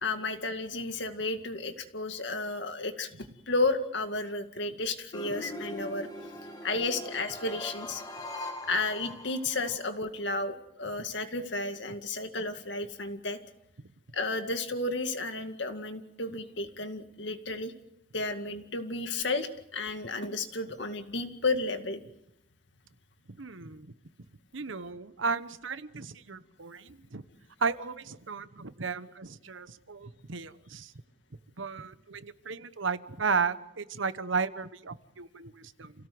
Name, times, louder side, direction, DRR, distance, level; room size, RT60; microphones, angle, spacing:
voice 1, 0.0-3.1 3.5-6.1 6.6-8.0 8.7-13.4 14.1-17.7 18.1-22.0, left 3 dB, 65° left, 7 dB, 2.1 m, -32 dB
sound 1, 5.1-9.8, left 2 dB, 20° left, 2.3 m, -41 dB
voice 2, 23.4-23.9 24.5-27.2 27.6-30.9 31.6-35.9, right 5 dB, 80° right, 13 dB, 1.1 m, -34 dB
28.5 x 17.5 x 7.9 m, 0.86 s
head